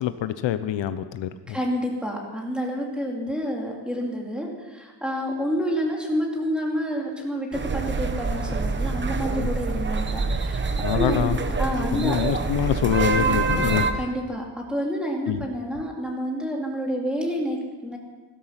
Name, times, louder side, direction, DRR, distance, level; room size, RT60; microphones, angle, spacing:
voice 1, 0.0-1.6 9.3-9.5 10.8-11.4 11.9-13.8 15.3-15.4, left 12 dB, 75° left, 11 dB, 0.8 m, -25 dB
voice 2, 1.5-7.5 7.7-10.7 10.9-11.3 11.6-12.2 13.9-18.0, equal, ahead, -1 dB, 2.6 m, -28 dB
sound 1, 7.5-13.9, right 4 dB, 25° right, 0.9 m, -25 dB
16.5 x 13.0 x 5.8 m, 1.4 s
cardioid pair, 160°, 45 cm